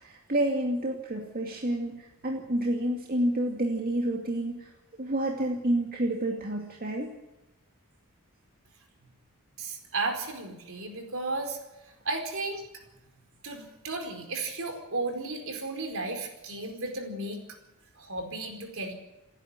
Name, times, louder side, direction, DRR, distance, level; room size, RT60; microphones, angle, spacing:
voice 1, 0.0-4.7 5.0-7.1, right 1 dB, 40° right, 0 dB, 2.4 m, -29 dB
voice 2, 9.6-11.6 12.0-12.6 13.4-17.4 18.0-18.9, right 3 dB, 65° right, 4 dB, 4.6 m, -34 dB
28.5 x 10.5 x 9.1 m, 1.0 s
head